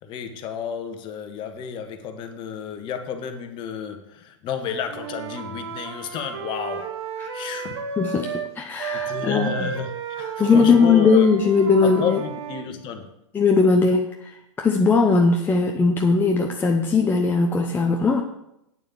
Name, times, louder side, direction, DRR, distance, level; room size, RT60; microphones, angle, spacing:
voice 1, 0.0-7.0 7.3-7.8 8.9-11.3 11.8-13.1, left 7 dB, 30° left, 6 dB, 1.5 m, -31 dB
Wind instrument woodwind instrument, 4.9-8.5 8.8-12.7, right 6 dB, 55° right, 1.6 m, -33 dB
voice 2, 8.0-9.7 10.4-12.2 13.3-18.2, left 4 dB, 10° left, 1 dB, 0.9 m, -19 dB
9.1 x 7.1 x 7.3 m, 0.84 s
figure-of-eight pair, 105°, 16 cm